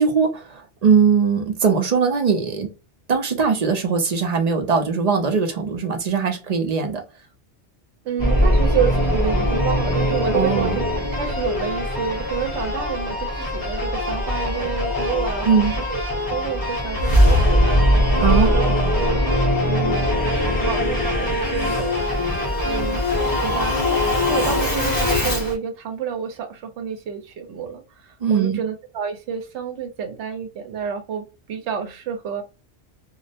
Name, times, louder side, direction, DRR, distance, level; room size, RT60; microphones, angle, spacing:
voice 1, 0.0-2.7 3.1-7.0 10.3-10.8 15.4-15.7 18.2-18.5 28.2-28.6, right 6 dB, 50° right, 0.5 m, -20 dB
voice 2, 8.0-10.9 11.2-18.7 19.0-19.2 19.7-20.1 20.4-22.0 22.6-32.4, right 7 dB, 75° right, 0.9 m, -29 dB
Singing / Musical instrument, 8.2-25.6, left 1 dB, 20° left, 0.8 m, -21 dB
2.3 x 2.0 x 2.7 m
omnidirectional pair, 1.2 m